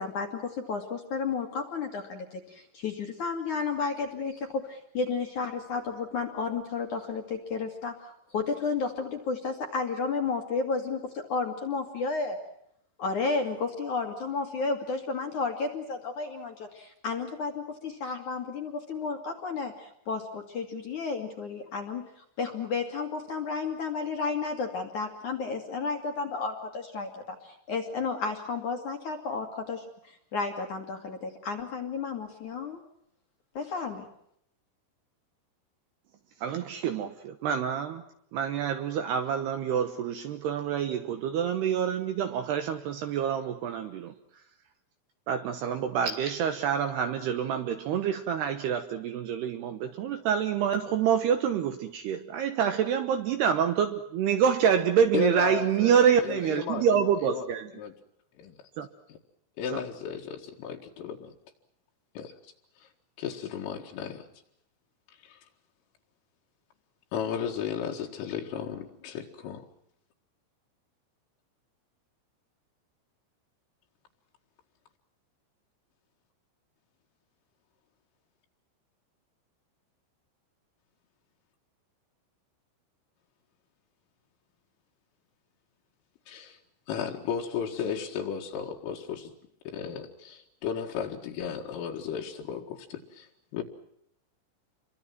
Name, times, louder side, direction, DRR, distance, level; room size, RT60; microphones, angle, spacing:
voice 1, 0.0-12.4 13.0-22.1 22.4-32.8 33.5-34.1, left 4 dB, 50° left, 2.7 m, -32 dB
voice 2, 36.4-38.0 38.3-44.1 45.3-57.7 58.8-58.9 59.7-59.8, right 8 dB, 70° right, 2.7 m, -27 dB
voice 3, 55.1-57.5 57.7-57.9 58.4-58.6 59.1-59.2 59.6-61.3 62.2-62.3 62.8-62.9 63.2-64.3 65.1-65.4 67.1-69.7 86.3-86.6 86.9-89.3 89.7-93.6, left 7 dB, 75° left, 4.4 m, -34 dB
29.5 x 24.0 x 6.1 m
omnidirectional pair, 5.9 m